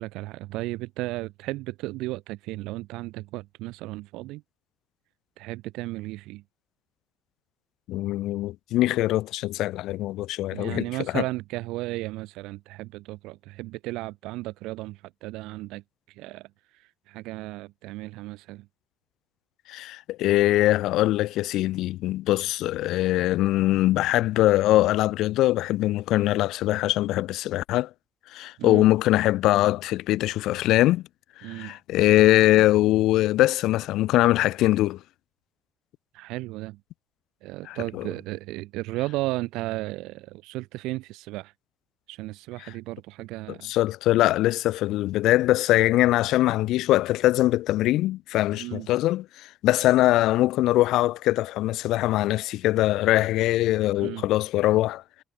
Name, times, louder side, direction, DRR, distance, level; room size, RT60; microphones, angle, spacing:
voice 1, 0.0-4.4 5.4-6.4 10.5-15.8 16.2-16.5 17.1-18.6 28.6-28.8 31.4-31.8 36.1-36.8 37.4-41.5 42.1-43.7 48.6-48.9 54.0-54.2, right 19 dB, 65° right, 4.7 m, -34 dB
voice 2, 7.9-11.2 19.7-27.9 28.3-31.0 31.4-35.0 37.6-38.1 42.6-42.7 43.5-55.0, left 16 dB, 60° left, 2.0 m, -22 dB
figure-of-eight pair, 45°, 0 cm